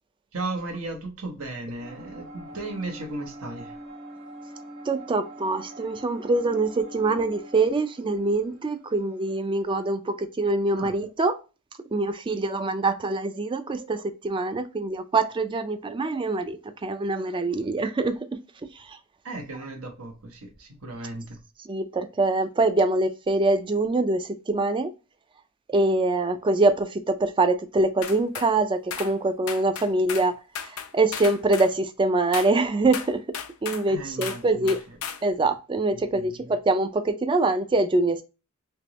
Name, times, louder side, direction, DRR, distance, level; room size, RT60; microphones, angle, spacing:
voice 1, 0.3-3.8 10.7-10.9 19.2-21.4 33.9-34.7 35.9-36.5, right 2 dB, 90° right, 1.1 m, -36 dB
sound 1, 1.8-9.8, right 1 dB, 50° right, 1.2 m, -44 dB
voice 2, 4.9-11.4 11.9-18.1 18.9-19.0 21.7-24.9 25.7-33.2 33.6-34.8 35.2-38.2, right 2 dB, 25° right, 0.4 m, -24 dB
sound 2, 28.0-28.5 28.9-29.1 29.5-30.3 30.5-31.7 32.3-32.5 32.9-33.9 34.2-34.4 34.7-35.2, left 8 dB, 80° left, 0.5 m, -35 dB
3.5 x 2.9 x 2.9 m
head